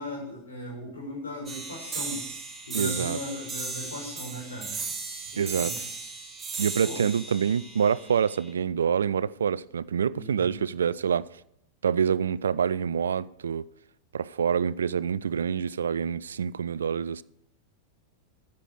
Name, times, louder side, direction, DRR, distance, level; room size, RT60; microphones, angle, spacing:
voice 1, 0.0-2.3 2.7-4.8 5.3-6.0 6.8-7.1 10.1-10.6, left 1 dB, 70° left, 5.1 m, -38 dB
sound 1, 1.5-8.5, right 4 dB, 10° right, 3.4 m, -36 dB
voice 2, 2.7-3.2 5.4-5.8 6.6-11.3 11.8-13.6 14.1-17.2, right 7 dB, 70° right, 0.3 m, -26 dB
9.9 x 8.2 x 6.5 m
figure-of-eight pair, 90°, 0 cm